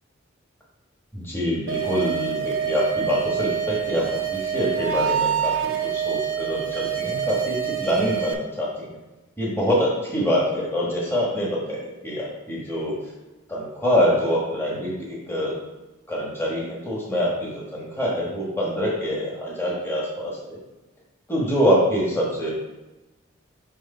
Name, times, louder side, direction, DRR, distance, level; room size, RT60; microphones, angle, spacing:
voice 1, 1.1-8.9 9.4-13.0 13.5-15.6 16.1-20.6 21.3-22.5, equal, 10° left, -5 dB, 1.3 m, -25 dB
sound 1, 1.7-8.3, right 9 dB, 90° right, 0.7 m, -26 dB
4.9 x 3.6 x 5.4 m, 1.1 s
head